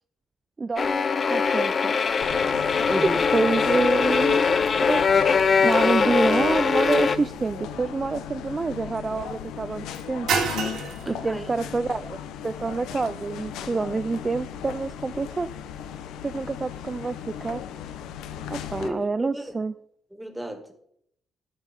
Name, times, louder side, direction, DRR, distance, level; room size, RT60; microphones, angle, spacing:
voice 1, 0.6-1.9 3.3-5.1 5.6-10.3 11.1-12.2 12.4-15.5 16.2-17.6 18.5-19.7, right 4 dB, 30° right, 0.3 m, -27 dB
sound 1, 0.8-7.2, left 5 dB, 40° left, 0.6 m, -22 dB
sound 2, 2.2-18.9, left 9 dB, 85° left, 0.9 m, -37 dB
voice 2, 2.9-3.2 11.1-11.5 18.8-19.4 20.1-20.7, equal, 5° right, 1.8 m, -32 dB
sound 3, 5.6-15.6, right 5 dB, 75° right, 2.1 m, -36 dB
13.5 x 5.3 x 5.3 m
cardioid pair, 85°, 0 cm